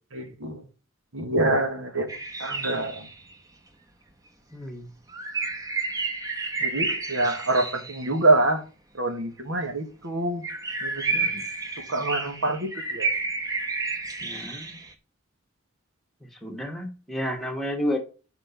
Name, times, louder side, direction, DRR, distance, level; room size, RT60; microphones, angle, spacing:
voice 1, 0.1-0.6 1.1-3.1 6.6-8.6 8.9-10.4 10.8-11.3 11.9-13.1, right 2 dB, 85° right, 1.7 m, -26 dB
sound 1, 2.1-3.3 5.1-8.1 10.4-14.9, right 4 dB, 20° right, 1.0 m, -31 dB
voice 2, 4.5-4.8 11.1-11.4 14.2-14.8 16.4-18.0, equal, ahead, 1.5 m, -31 dB
5.9 x 5.8 x 7.0 m
head